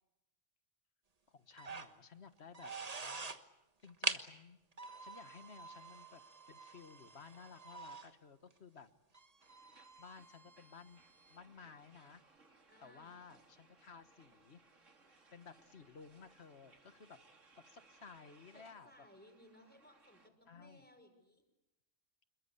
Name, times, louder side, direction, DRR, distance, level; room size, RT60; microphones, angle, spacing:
voice 1, 1.3-2.7 3.8-4.6 5.0-8.9 10.0-11.0 11.3-12.2 12.8-14.6 15.3-17.2 17.7-19.1 20.5-20.8, left 5 dB, 60° left, 11 dB, 1.6 m, -56 dB
sound 1, 1.5-1.9 2.4-3.4 3.8-4.2 4.7-8.1 8.5-8.6 9.1-11.4, right 3 dB, 30° right, 1.4 m, -45 dB
sound 2, 9.4-20.3, right 3 dB, 80° right, 2.9 m, -67 dB
voice 2, 12.7-13.2 18.5-21.4, equal, 5° left, 6 dB, 5.3 m, -62 dB
27.5 x 22.0 x 8.3 m, 0.97 s
omnidirectional pair, 1.3 m